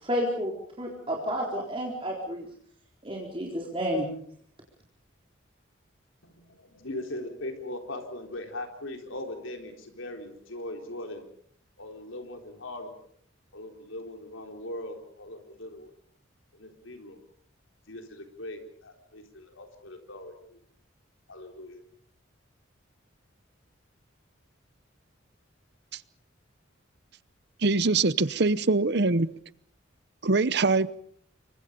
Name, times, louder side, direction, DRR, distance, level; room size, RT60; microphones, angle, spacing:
voice 1, 0.0-2.5 3.0-4.1, equal, 25° right, 4.1 m, -31 dB
voice 2, 6.2-11.2 11.8-12.9 13.5-16.0 16.5-17.2 17.9-20.6 21.3-21.8, left 1 dB, 85° left, 4.1 m, -40 dB
voice 3, 27.6-29.3 30.2-30.9, right 3 dB, 55° right, 0.9 m, -23 dB
29.0 x 24.0 x 5.2 m
head